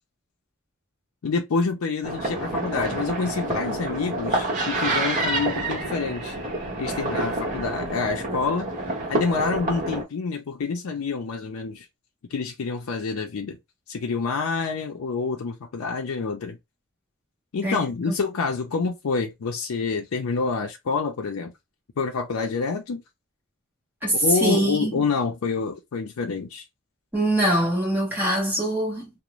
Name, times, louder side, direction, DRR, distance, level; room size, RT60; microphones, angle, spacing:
voice 1, 1.2-6.3 6.8-8.7 9.1-11.9 12.3-13.6 13.9-16.6 17.5-21.5 22.0-23.0 24.2-26.6, left 4 dB, 80° left, 0.4 m, -27 dB
sound 1, 2.0-10.0, right 2 dB, 35° right, 0.8 m, -28 dB
voice 2, 24.0-25.1 27.1-29.1, right 1 dB, 10° right, 1.0 m, -23 dB
2.5 x 2.0 x 2.9 m
head